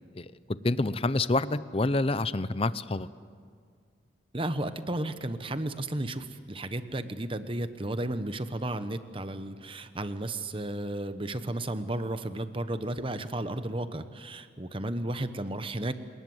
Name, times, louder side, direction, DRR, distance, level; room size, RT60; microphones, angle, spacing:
voice 1, 0.6-3.1, left 2 dB, 30° left, 16 dB, 0.7 m, -27 dB
voice 2, 4.3-15.9, right 1 dB, 30° right, 10 dB, 1.1 m, -33 dB
28.5 x 19.0 x 8.0 m, 2.1 s
head